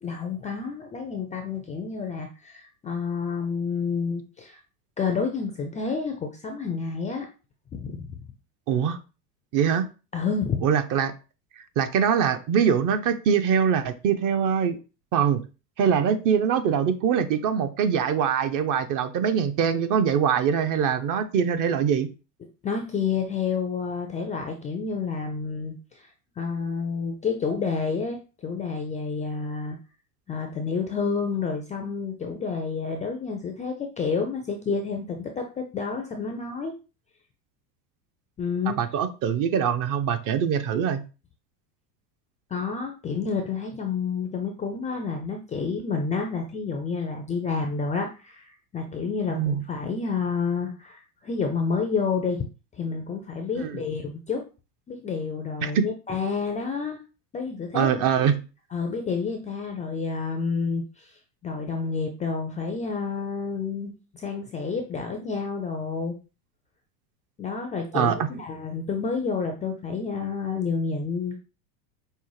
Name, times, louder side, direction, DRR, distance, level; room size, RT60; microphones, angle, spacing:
voice 1, 0.0-4.6 5.0-7.3 7.7-8.2 10.1-10.6 22.6-26.1 26.4-29.8 30.3-36.7 38.4-38.8 42.5-52.4 52.8-54.4 54.9-57.0 57.3-57.9 58.7-61.1 61.4-66.2 67.4-71.4, left 5 dB, 15° left, 4 dB, 0.3 m, -29 dB
voice 2, 8.7-9.0 9.5-9.9 10.6-11.1 11.8-14.8 15.1-15.4 15.8-22.1 38.8-41.0 49.3-49.6 53.5-53.8 55.6-55.8 57.7-58.4 67.9-68.2, right 7 dB, 40° right, 9 dB, 0.6 m, -23 dB
5.3 x 2.1 x 3.1 m, 0.32 s
hypercardioid pair, 95°, 49 cm